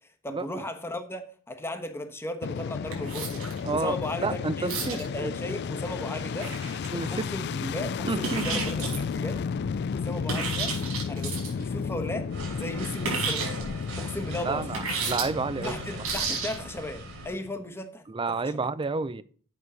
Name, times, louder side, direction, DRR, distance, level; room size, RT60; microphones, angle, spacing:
voice 1, 0.2-3.4 3.7-6.5 6.9-9.4 9.9-10.7 11.1-13.7 14.0-14.7 15.6-18.7, left 1 dB, 10° left, 1.1 m, -36 dB
Fixed-wing aircraft airplane, 2.4-17.6, left 5 dB, 50° left, 0.3 m, -33 dB
sound 1, 2.9-3.7 4.7-5.1 6.4-7.2 8.2-9.1 10.3-11.6 13.0-13.6 14.7-15.2 16.0-16.6, right 4 dB, 85° right, 4.2 m, -31 dB
voice 2, 3.6-5.0 6.9-7.3 8.0-8.6 14.4-15.7 18.1-19.2, right 3 dB, 25° right, 0.5 m, -30 dB
sound 2, 12.3-17.4, right 3 dB, 65° right, 2.4 m, -41 dB
8.2 x 5.5 x 6.2 m
head